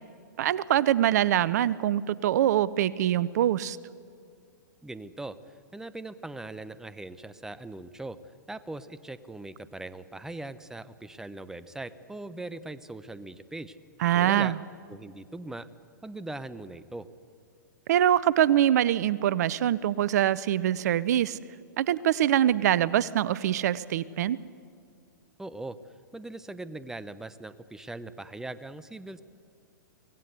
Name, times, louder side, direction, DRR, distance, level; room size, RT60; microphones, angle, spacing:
voice 1, 0.4-3.8 14.0-14.6 17.9-21.4 21.8-24.4, right 11 dB, 55° right, 20 dB, 0.6 m, -24 dB
voice 2, 4.8-5.4 5.7-8.2 8.5-13.8 14.1-14.5 14.9-15.7 16.0-17.1 25.4-25.8 26.1-29.2, right 2 dB, 5° right, 14 dB, 0.8 m, -40 dB
24.0 x 17.5 x 8.2 m, 2.3 s
figure-of-eight pair, 110°, 10 cm